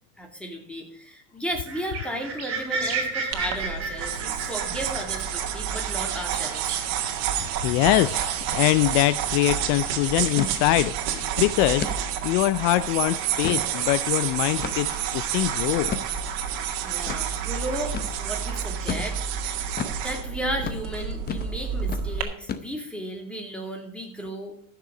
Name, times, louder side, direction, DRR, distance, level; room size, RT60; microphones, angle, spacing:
voice 1, 0.2-6.8 16.8-19.2 20.0-24.5, equal, 5° left, 2 dB, 2.6 m, -34 dB
sound 1, 1.5-9.3 9.7-10.9, right 4 dB, 35° right, 4.3 m, -34 dB
sound 2, 3.3-22.2, right 8 dB, 55° right, 2.1 m, -29 dB
voice 2, 7.6-11.9 12.2-15.9, left 17 dB, 55° left, 16 dB, 0.5 m, -23 dB
sound 3, 8.4-8.6 8.9-9.0 9.4-9.7 10.4-10.6 11.1-11.2 11.8-12.0 12.5-12.6 13.2-13.7 14.6-15.0 15.9-16.1 17.1-17.2 17.9-18.1 18.9-19.1 19.8-20.0 20.6-20.8 21.3-21.5 21.8-22.1 22.5-22.9, left 6 dB, 25° left, 0.7 m, -32 dB
14.5 x 6.8 x 4.9 m, 0.64 s
supercardioid pair, 135°, 42 cm